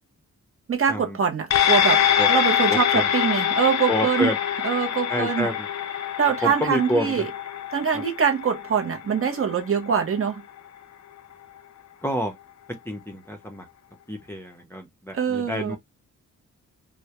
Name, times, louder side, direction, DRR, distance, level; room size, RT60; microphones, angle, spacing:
voice 1, 0.7-4.3 4.6-5.5 6.2-7.3 7.7-10.4 15.1-15.8, right 7 dB, 45° right, 0.5 m, -24 dB
sound 1, 1.5-10.2 10.6-10.7, left 9 dB, 60° left, 0.4 m, -24 dB
voice 2, 3.9-4.4 5.1-5.5 6.4-7.3 7.9-8.0 12.0-12.3 12.9-13.6 14.1-15.8, equal, 10° left, 0.5 m, -28 dB
2.2 x 2.0 x 2.8 m
wide cardioid pair, 155°, 31 cm